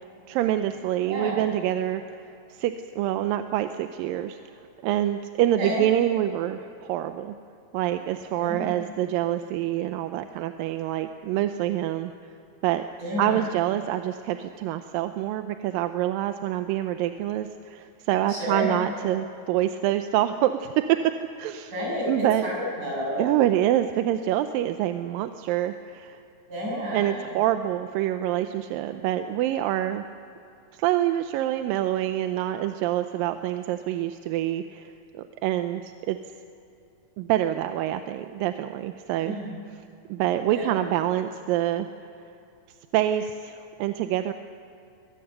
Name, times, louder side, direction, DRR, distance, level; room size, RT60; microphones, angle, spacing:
voice 1, 0.3-2.0 2.5-4.4 4.8-7.3 7.7-12.1 12.6-12.9 13.2-20.8 21.4-21.7 22.1-22.5 23.2-26.2 26.9-30.0 30.8-36.2 37.2-39.4 40.1-41.9 42.9-44.3, right 12 dB, 90° right, 8 dB, 2.4 m, -26 dB
voice 2, 1.1-1.4 5.6-5.8 8.4-8.8 13.0-13.4 18.3-18.7 21.7-23.2 26.5-27.3 39.2-39.5 40.5-40.7, equal, 60° right, -3 dB, 8.4 m, -30 dB
22.5 x 19.0 x 6.7 m, 2.8 s
omnidirectional pair, 3.9 m